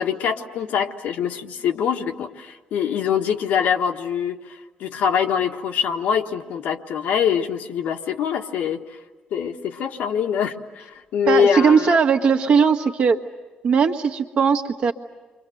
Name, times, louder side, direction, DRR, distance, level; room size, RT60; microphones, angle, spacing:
voice 1, 0.0-8.8 9.3-12.0, left 7 dB, 90° left, 3 dB, 1.6 m, -24 dB
voice 2, 11.3-13.2 13.6-14.9, right 6 dB, 50° right, 4 dB, 1.6 m, -18 dB
30.0 x 24.5 x 7.9 m, 1.2 s
cardioid pair, 140°, 3 cm